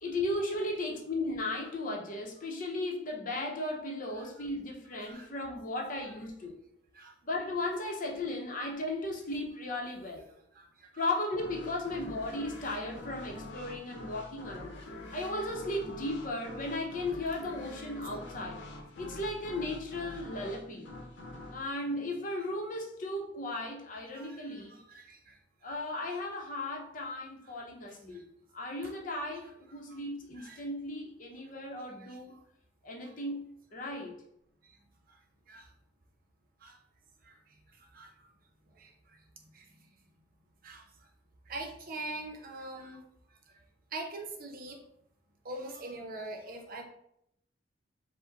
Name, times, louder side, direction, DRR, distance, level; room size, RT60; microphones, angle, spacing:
voice 1, 0.0-6.5 7.2-10.2 11.0-14.8 15.1-18.6 19.0-20.9 21.5-24.8 25.6-28.2 28.5-32.3 32.8-34.1, left 1 dB, 45° left, 0 dB, 0.8 m, -36 dB
voice 2, 10.5-11.1 22.3-22.4 24.1-25.7 27.9-28.2 29.9-30.0 30.4-30.6 32.0-32.4 33.0-33.1 34.6-34.8 35.1-35.2 35.5-35.7 36.6-36.8 37.2-38.3 38.7-39.9 40.6-41.1 41.5-43.0 43.5-43.6 43.9-44.8 45.4-46.8, right 2 dB, 50° right, 2 dB, 0.8 m, -44 dB
sound 1, 11.4-22.8, left 2 dB, 90° left, 0.8 m, -46 dB
5.0 x 2.1 x 3.9 m, 0.76 s
head